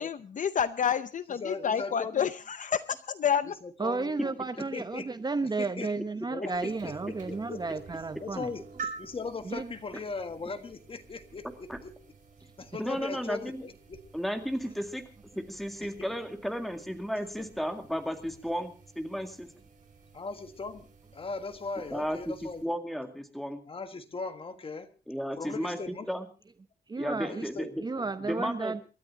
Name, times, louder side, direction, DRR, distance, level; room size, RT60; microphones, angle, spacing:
voice 1, 0.0-3.5, left 8 dB, 50° left, 14 dB, 0.7 m, -29 dB
voice 2, 1.3-2.3 3.4-4.1 4.7-5.1 5.6-5.9 6.3-7.6 8.2-12.0 12.6-14.0 16.0-16.1 17.4-17.5 20.1-20.8 21.1-22.6 23.7-24.9 25.4-26.1 27.2-27.7, left 4 dB, 30° left, 9 dB, 1.6 m, -39 dB
voice 3, 3.8-8.5 9.4-9.7 26.9-27.5 27.8-28.8, right 3 dB, 25° right, 11 dB, 0.9 m, -33 dB
sound 1, 6.5-22.6, right 5 dB, 50° right, 5.6 m, -49 dB
voice 4, 12.8-13.6 14.1-15.0 15.4-19.5 21.9-23.6 25.1-25.8 26.1-26.3 27.0-27.7 28.2-28.7, equal, ahead, 6 dB, 2.1 m, -33 dB
28.0 x 13.0 x 2.8 m, 0.33 s
wide cardioid pair, 155°, 17 cm